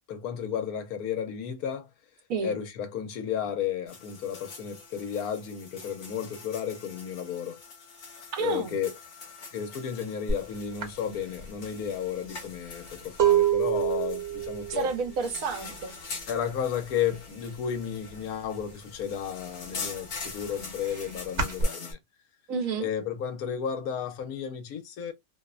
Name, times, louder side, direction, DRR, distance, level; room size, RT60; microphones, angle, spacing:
voice 1, 0.1-1.9 2.4-7.6 8.4-8.9 9.5-14.9 16.3-22.0 22.8-25.1, left 8 dB, 85° left, 1.2 m, -33 dB
sound 1, 3.9-21.9, left 4 dB, 55° left, 1.1 m, -44 dB
voice 2, 8.3-8.8 14.7-16.0 22.5-22.9, right 5 dB, 70° right, 1.0 m, -30 dB
sound 2, 10.3-10.4 10.8-16.5 16.7-17.2 17.5-18.7 19.1-21.6, right 9 dB, 50° right, 1.1 m, -28 dB
2.8 x 2.1 x 2.3 m
omnidirectional pair, 1.6 m